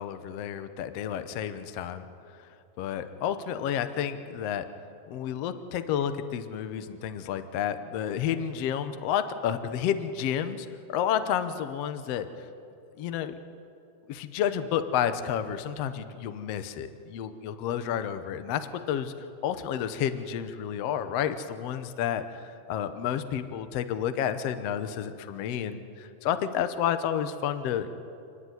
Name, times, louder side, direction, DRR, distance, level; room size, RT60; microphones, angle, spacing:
voice 1, 0.0-2.0 2.8-4.6 5.1-12.3 13.0-13.3 14.1-28.0, left 9 dB, 80° left, 10 dB, 1.4 m, -30 dB
29.5 x 10.0 x 9.5 m, 2.7 s
omnidirectional pair, 4.2 m